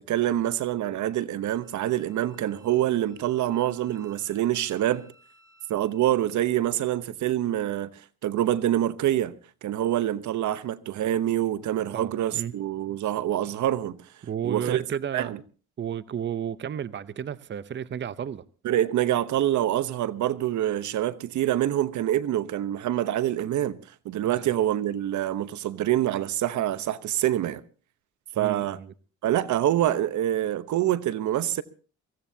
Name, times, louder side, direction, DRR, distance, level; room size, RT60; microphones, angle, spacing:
voice 1, 0.0-5.1 5.7-7.9 8.2-9.3 9.6-14.0 14.4-14.8 15.1-15.4 18.6-23.8 24.0-27.6 28.4-28.8 29.2-31.6, right 12 dB, 70° right, 0.9 m, -26 dB
Wind instrument woodwind instrument, 1.4-6.6, equal, 10° right, 6.0 m, -60 dB
voice 2, 11.9-12.5 14.2-15.4 15.8-18.4 24.2-24.5 28.4-28.9, right 8 dB, 40° right, 0.7 m, -33 dB
23.5 x 16.0 x 2.8 m
cardioid pair, 90°, 30 cm